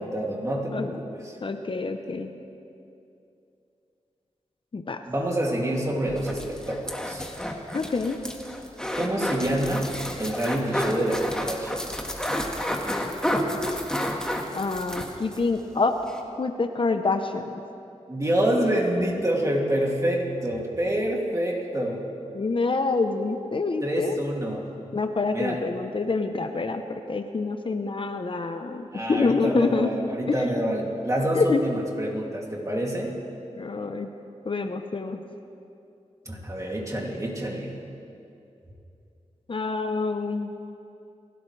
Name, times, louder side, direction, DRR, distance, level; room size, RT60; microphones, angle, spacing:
voice 1, 0.0-1.4 5.1-7.3 9.0-9.9 10.2-11.9 18.1-22.0 23.8-24.6 25.3-25.6 28.9-33.1 36.3-37.7, right 1 dB, 25° right, -2 dB, 2.6 m, -27 dB
voice 2, 1.4-2.3 4.7-5.0 7.7-8.2 14.5-16.0 16.4-17.6 22.3-24.2 24.9-29.9 30.3-30.6 31.3-31.6 33.5-34.1 34.4-35.2 39.5-40.5, left 3 dB, 45° left, 6 dB, 0.8 m, -26 dB
sound 1, 6.1-15.4 15.7-15.8 16.1-16.2, equal, 5° left, 1.6 m, -30 dB
29.0 x 12.0 x 3.3 m, 2.7 s
wide cardioid pair, 75°, 12 cm